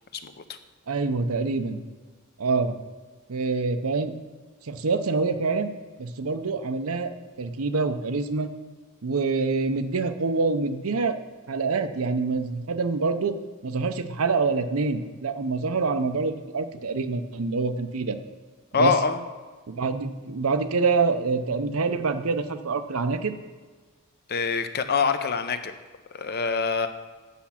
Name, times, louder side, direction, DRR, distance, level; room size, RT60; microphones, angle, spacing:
voice 1, 0.1-0.6 18.7-19.2 24.3-25.7 26.1-26.9, left 5 dB, 45° left, 9 dB, 0.6 m, -25 dB
voice 2, 0.9-1.8 2.4-2.8 3.3-4.1 4.7-5.7 6.0-7.1 7.4-8.5 9.0-11.2 11.5-13.3 13.6-18.2 18.8-18.9 19.7-23.4, right 4 dB, 70° right, 9 dB, 0.7 m, -26 dB
8.4 x 7.2 x 5.8 m, 1.5 s
head